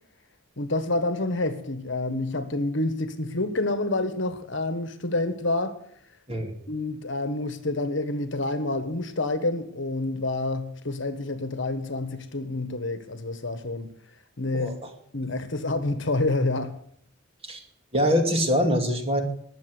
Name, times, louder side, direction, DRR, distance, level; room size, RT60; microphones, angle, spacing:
voice 1, 0.6-5.8 6.7-13.9 14.4-14.8 15.1-16.8, left 2 dB, 60° left, 1.4 m, -28 dB
voice 2, 14.5-14.9 17.4-17.6 17.9-19.2, equal, 25° right, 2.5 m, -24 dB
20.5 x 7.4 x 7.9 m
head